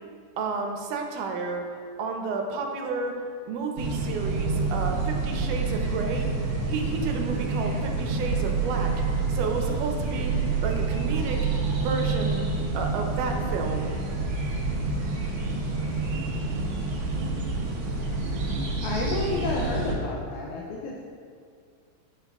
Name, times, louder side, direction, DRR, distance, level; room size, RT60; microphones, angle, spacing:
voice 1, 0.4-1.7 2.0-3.2 3.5-6.3 6.7-8.9 9.3-10.3 10.6-11.4 11.8-12.4 12.7-13.9, right 4 dB, 80° right, 3 dB, 2.2 m, -31 dB
sound 1, 3.8-19.9, right 3 dB, 65° right, 1.9 m, -28 dB
voice 2, 18.8-21.0, left 3 dB, 80° left, -3 dB, 1.9 m, -30 dB
9.2 x 5.8 x 2.3 m, 2.2 s
omnidirectional pair, 3.7 m